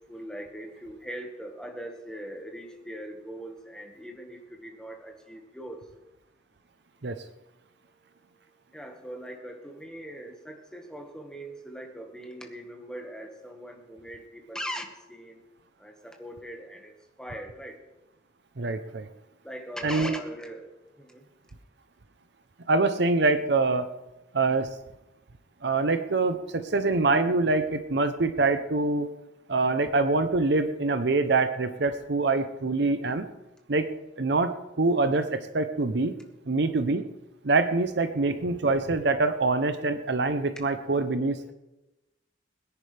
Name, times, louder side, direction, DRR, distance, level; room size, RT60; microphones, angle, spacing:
voice 1, 0.1-5.8 8.7-15.4 15.8-17.8 19.4-20.7 21.0-21.2 38.2-39.7 40.5-41.5, equal, 5° left, 2 dB, 1.5 m, -41 dB
voice 2, 18.6-19.1 19.8-20.1 22.7-23.9 24.3-24.7 25.6-29.1 29.5-33.3 33.7-33.9 34.2-36.1 36.5-37.0 37.4-41.4, right 3 dB, 60° right, 10 dB, 0.7 m, -25 dB
22.0 x 10.0 x 3.4 m, 1.0 s
head